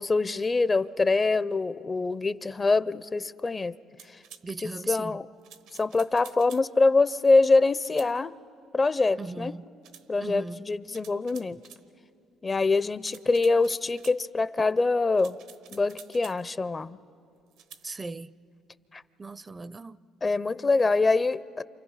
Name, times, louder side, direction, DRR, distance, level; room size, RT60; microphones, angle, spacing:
voice 1, 0.0-3.7 4.6-5.3 5.8-8.3 8.7-9.5 10.1-11.6 12.4-15.4 15.7-17.0 18.9-19.0 20.2-21.6, left 3 dB, 30° left, 0.5 m, -24 dB
sound 1, 4.0-4.5 5.4-6.7 7.8-8.1 9.8-10.1 10.9-11.8 13.0-14.2 15.1-16.4 17.5-17.9, right 8 dB, 85° right, 1.1 m, -50 dB
voice 2, 4.4-5.2 9.2-9.7 10.2-10.6 17.8-18.3 19.2-20.0, right 3 dB, 25° right, 0.5 m, -37 dB
29.0 x 27.5 x 5.6 m
supercardioid pair, 70°, 0 cm